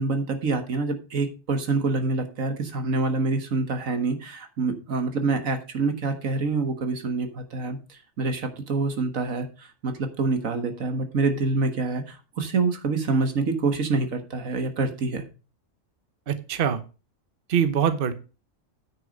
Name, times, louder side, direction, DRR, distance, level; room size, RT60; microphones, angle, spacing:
voice 1, 0.0-15.2, right 3 dB, 85° right, 7 dB, 1.9 m, -26 dB
voice 2, 16.3-16.8 17.5-18.1, right 8 dB, 45° right, 11 dB, 1.0 m, -23 dB
9.5 x 6.3 x 5.3 m, 0.32 s
omnidirectional pair, 1.4 m